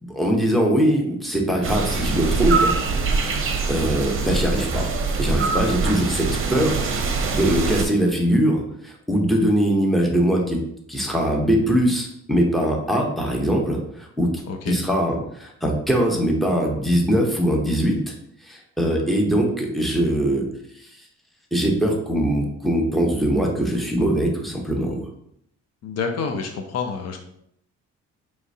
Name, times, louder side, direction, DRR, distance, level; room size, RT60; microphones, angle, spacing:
voice 1, 0.0-2.7 3.7-4.9 5.2-6.8 7.3-10.6 10.9-18.1 18.4-20.4 20.7-20.9 21.5-25.0, equal, ahead, 0 dB, 0.9 m, -21 dB
sound 1, 1.6-7.8, right 4 dB, 45° right, 0.7 m, -23 dB
voice 2, 14.5-14.8 25.8-27.2, left 5 dB, 55° left, 4 dB, 0.6 m, -28 dB
4.6 x 3.2 x 2.7 m, 0.71 s
cardioid pair, 90°, 30 cm